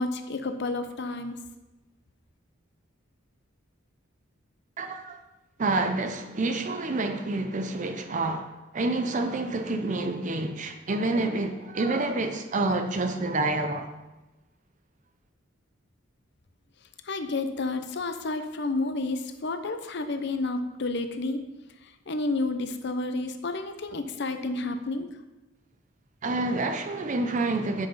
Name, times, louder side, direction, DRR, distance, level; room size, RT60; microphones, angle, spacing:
voice 1, 0.0-1.4 17.1-21.4 21.8-25.1, left 2 dB, 55° left, 0.7 m, -30 dB
voice 2, 4.8-5.2 5.6-13.9 26.2-27.9, right 2 dB, 40° right, 0.5 m, -28 dB
7.7 x 5.7 x 5.3 m
head